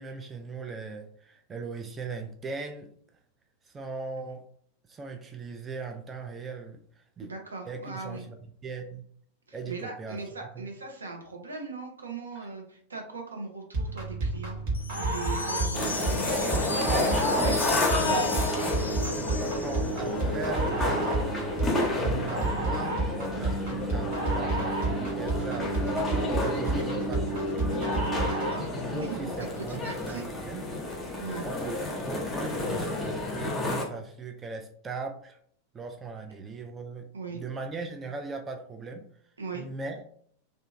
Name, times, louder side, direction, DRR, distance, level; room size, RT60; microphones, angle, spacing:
voice 1, 0.0-2.9 3.6-4.5 4.9-7.3 7.7-8.4 8.6-9.0 9.5-10.2 10.5-10.7 17.1-17.3 19.6-21.3 21.9-28.1 28.9-30.6 31.4-35.4 35.7-39.1 39.5-40.0, right 4 dB, 20° right, 4 dB, 0.3 m, -39 dB
voice 2, 7.2-8.2 9.5-14.6 14.9-17.6 18.0-18.3 28.3-30.3 31.2-31.5 37.1-37.4 39.4-39.6, right 4 dB, 75° right, 2 dB, 0.6 m, -39 dB
sound 1, 13.7-28.7, right 2 dB, 50° right, 1.1 m, -30 dB
sound 2, 14.7-20.1, left 3 dB, 75° left, 0.3 m, -36 dB
sound 3, 15.7-33.8, left 2 dB, 15° left, 0.8 m, -31 dB
2.7 x 2.4 x 2.5 m, 0.62 s
figure-of-eight pair, 90°, 0 cm